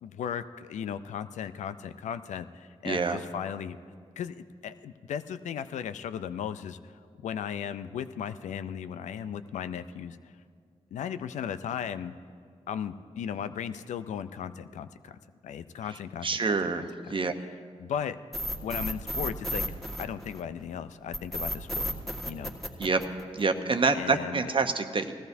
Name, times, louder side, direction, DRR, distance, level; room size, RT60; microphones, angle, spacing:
voice 1, 0.0-3.8 4.2-10.2 10.9-12.1 12.7-16.5 17.2-18.2 18.6-19.6 20.0-21.9 22.3-22.5 23.9-24.5, left 8 dB, 85° left, 12 dB, 0.4 m, -36 dB
voice 2, 2.8-3.2 16.2-17.3 22.8-23.0 23.3-25.1, right 4 dB, 45° right, 7 dB, 0.9 m, -27 dB
sound 1, 18.3-20.6 21.1-23.6, equal, ahead, 1.7 m, -33 dB
18.5 x 14.0 x 2.7 m, 2.1 s
cardioid pair, 50°, 12 cm